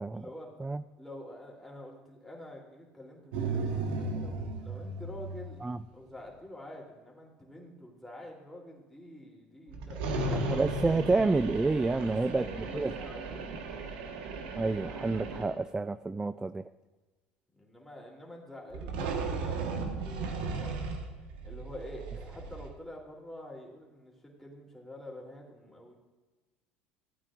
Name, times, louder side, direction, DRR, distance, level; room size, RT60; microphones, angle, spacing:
voice 1, 0.1-0.5 1.0-5.6 5.9-10.8 12.0-13.6 17.5-20.9 21.4-26.0, left 1 dB, 5° left, -3 dB, 3.1 m, -47 dB
sound 1, 3.3-5.6 9.7-15.6 18.7-22.7, right 3 dB, 80° right, 1.3 m, -35 dB
voice 2, 10.3-12.9 14.6-16.7, right 3 dB, 15° right, 13 dB, 0.3 m, -29 dB
16.0 x 8.6 x 2.5 m, 1.2 s
supercardioid pair, 90°, 5 cm